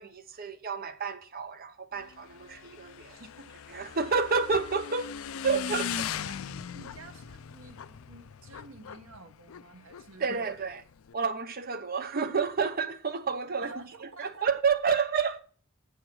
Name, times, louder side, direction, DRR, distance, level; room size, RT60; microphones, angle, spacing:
voice 1, 0.0-3.1 3.7-5.1 5.4-6.1 10.2-10.8 11.1-13.7 14.0-15.4, right 5 dB, 45° right, 0.8 m, -30 dB
Motorcycle / Engine, 1.9-11.1, left 8 dB, 70° left, 0.4 m, -40 dB
voice 2, 3.1-3.5 6.2-10.6 13.6-14.5, right 2 dB, 65° right, 1.2 m, -50 dB
8.6 x 6.4 x 6.1 m
head